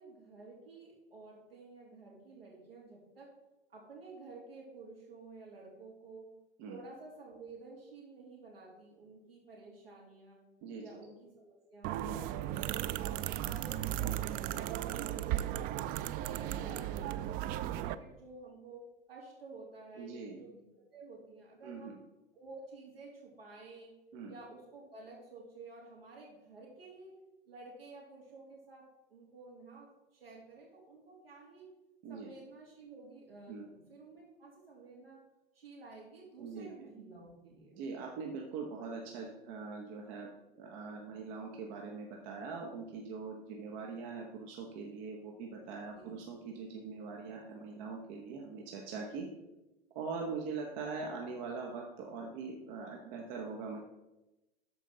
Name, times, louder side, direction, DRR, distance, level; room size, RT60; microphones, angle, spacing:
voice 1, 0.0-3.3 3.7-6.3 6.7-10.4 10.8-13.0 13.3-15.9 16.2-22.0 22.3-23.9 24.3-27.1 27.4-31.7 32.1-35.2 35.5-37.8 45.8-46.2, right 3 dB, 80° right, -3 dB, 3.1 m, -52 dB
voice 2, 10.6-11.0 20.0-20.4 21.6-22.0 24.1-24.3 32.0-32.3 33.5-33.7 36.4-36.7 37.7-40.3 40.6-49.3 49.9-53.8, right 4 dB, 50° right, 1 dB, 1.2 m, -42 dB
sound 1, 11.8-17.9, right 13 dB, 30° right, 0.4 m, -36 dB
13.0 x 4.6 x 3.9 m, 0.99 s
figure-of-eight pair, 85°, 29 cm